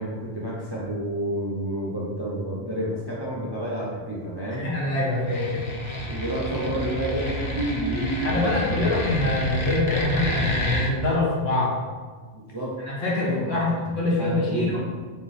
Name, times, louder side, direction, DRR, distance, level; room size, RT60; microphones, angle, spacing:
voice 1, 0.0-4.7 6.1-8.9 12.3-12.8 13.2-14.9, right 1 dB, 30° right, -6 dB, 0.6 m, -30 dB
voice 2, 4.6-5.7 8.2-11.7 12.9-14.8, left 2 dB, 60° left, -6 dB, 1.5 m, -25 dB
sound 1, 5.2-10.9, left 1 dB, 35° left, 0.6 m, -29 dB
4.2 x 2.9 x 4.0 m, 1.5 s
omnidirectional pair, 1.2 m